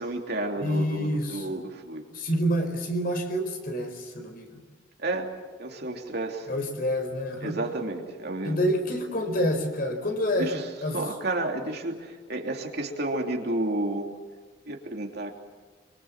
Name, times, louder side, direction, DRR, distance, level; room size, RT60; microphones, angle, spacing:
voice 1, 0.0-2.0 5.0-5.3 5.6-6.5 7.4-8.6 10.4-10.6 10.9-14.1 14.7-15.3, right 2 dB, 55° right, 2 dB, 3.1 m, -31 dB
voice 2, 0.6-1.6 2.1-4.6 6.5-7.6 8.4-10.5 10.8-11.0, equal, 50° left, 5 dB, 4.6 m, -28 dB
26.5 x 25.0 x 7.4 m, 1.4 s
head